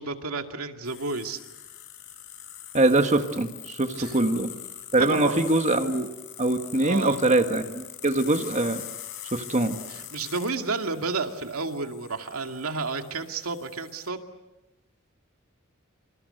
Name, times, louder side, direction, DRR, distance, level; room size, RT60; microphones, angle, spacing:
voice 1, 0.0-1.4 3.9-4.2 5.0-5.5 6.8-7.2 9.9-14.2, right 3 dB, 90° right, 5 dB, 2.3 m, -31 dB
sound 1, 0.8-14.1, left 11 dB, 60° left, 3.7 m, -43 dB
voice 2, 2.7-4.5 4.9-6.1 6.4-8.8 9.3-9.8, right 2 dB, 35° right, 6 dB, 1.5 m, -23 dB
27.0 x 27.0 x 7.9 m, 1.0 s
head